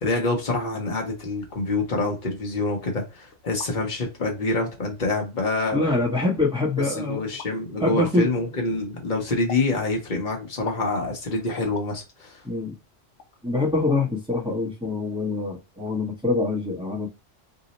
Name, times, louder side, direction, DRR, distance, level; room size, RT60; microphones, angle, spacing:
voice 1, 0.0-6.1 6.9-12.4, left 2 dB, 45° left, 0.9 m, -26 dB
sound 1, 3.3-3.7 4.6-4.7 5.5-5.8 7.4-7.5 9.5-9.7 10.7-10.9 11.7-11.9 13.2-13.3 13.9-14.0 14.3-14.4, left 7 dB, 80° left, 0.9 m, -39 dB
voice 2, 5.7-7.2 7.8-8.2 12.4-12.7 13.4-17.1, left 2 dB, 5° right, 0.6 m, -24 dB
2.8 x 2.0 x 4.0 m
omnidirectional pair, 1.2 m